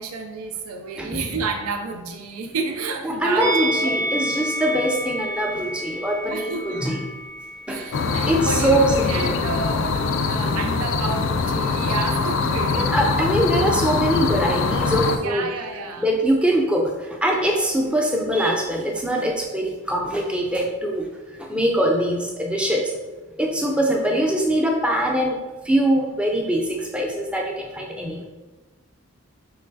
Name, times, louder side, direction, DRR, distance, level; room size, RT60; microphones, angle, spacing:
voice 1, 0.0-4.2 6.3-6.8 7.7-13.1 13.4-13.5 13.9-14.0 15.2-16.1, right 4 dB, 90° right, 4 dB, 0.5 m, -30 dB
voice 2, 3.0-7.0 7.7-9.4 12.7-15.5 16.0-21.1 21.4-22.9 23.4-25.4 25.6-28.3, right 1 dB, 5° right, 0 dB, 0.5 m, -23 dB
Musical instrument, 3.4-8.6 8.9-9.1, right 1 dB, 50° right, 0.9 m, -30 dB
sound 1, 7.9-15.2, left 4 dB, 60° left, 0.3 m, -23 dB
5.7 x 3.1 x 2.7 m, 1.2 s
head